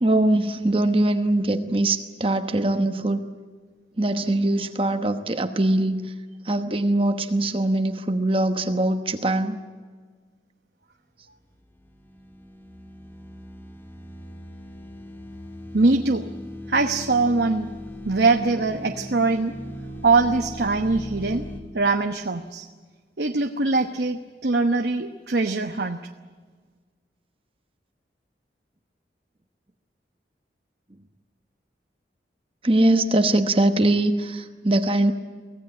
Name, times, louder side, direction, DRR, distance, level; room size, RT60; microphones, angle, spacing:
voice 1, 0.0-3.2 4.0-6.1 6.4-9.6 32.6-35.1, right 1 dB, 30° right, 7 dB, 1.0 m, -22 dB
sound 1, 11.8-21.6, equal, 10° left, 1.6 m, -39 dB
voice 2, 15.7-16.3 16.7-17.7 18.0-19.5 20.0-21.5 21.7-22.7 23.2-26.0, right 3 dB, 65° right, 5 dB, 1.0 m, -22 dB
24.5 x 16.5 x 9.6 m, 1.5 s
head